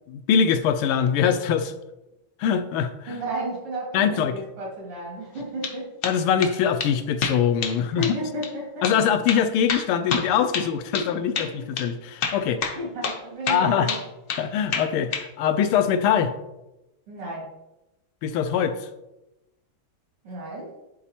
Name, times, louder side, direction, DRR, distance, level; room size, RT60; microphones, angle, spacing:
voice 1, 0.1-1.7 2.4-3.2 3.9-4.4 6.0-8.1 8.8-12.6 13.5-13.9 14.4-16.3 18.2-18.9, left 8 dB, 85° left, 9 dB, 1.5 m, -23 dB
voice 2, 3.1-5.9 7.8-8.9 10.9-11.7 12.8-14.0 17.1-17.5 20.2-20.7, right 1 dB, 80° right, -4 dB, 3.2 m, -33 dB
sound 1, 5.4-5.8 6.0-6.5 6.8-6.9 7.2-7.8 8.0-8.2 8.4-8.5 8.8-9.0 9.3-11.1 11.3-11.5 11.8-11.9 12.2-12.8 13.0-13.2 13.5-14.4 14.7-15.3, left 5 dB, 65° left, 0.9 m, -28 dB
10.5 x 4.2 x 2.8 m, 0.95 s
omnidirectional pair, 2.4 m